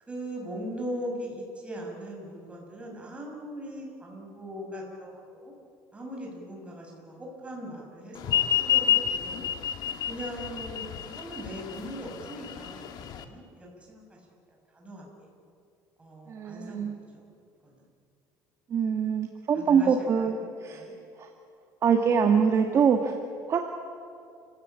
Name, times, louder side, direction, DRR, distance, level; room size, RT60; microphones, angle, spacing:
voice 1, 0.1-5.5 5.9-9.5 10.1-12.9 13.2-14.2 14.5-15.3 16.0-17.2 17.6-17.8 19.5-21.0, equal, 15° right, -1 dB, 6.6 m, -40 dB
sound 1, 8.2-13.2, left 10 dB, 60° left, 1.7 m, -28 dB
voice 2, 16.3-17.0 18.7-20.8 21.2-21.3 21.8-23.2 23.5-23.6, right 6 dB, 40° right, 4 dB, 1.6 m, -24 dB
29.5 x 16.5 x 8.8 m, 2.4 s
cardioid pair, 140°, 8 cm